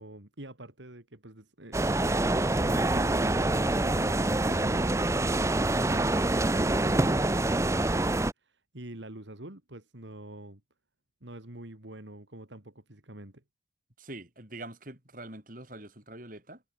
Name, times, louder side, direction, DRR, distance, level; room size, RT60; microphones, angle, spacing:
voice 1, 0.0-1.8 2.6-10.6 11.2-13.4, right 1 dB, 70° right, 2.9 m, -45 dB
sound 1, 1.7-8.3, right 2 dB, 15° right, 0.6 m, -26 dB
voice 2, 14.0-16.6, right 1 dB, 45° right, 6.1 m, -44 dB
head